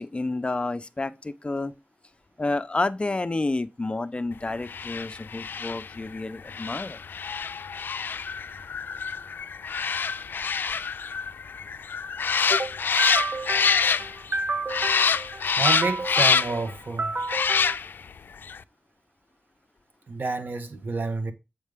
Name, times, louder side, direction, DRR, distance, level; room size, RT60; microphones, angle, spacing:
voice 1, 0.0-1.7 2.4-7.0, left 2 dB, 30° left, 0.6 m, -30 dB
sound 1, 4.6-14.4 14.7-16.7 17.2-18.1 18.4-18.6, left 6 dB, 75° left, 0.4 m, -26 dB
voice 2, 12.5-17.8 20.1-21.3, right 3 dB, 65° right, 1.3 m, -29 dB
7.4 x 5.4 x 3.5 m
cardioid pair, 50°, 3 cm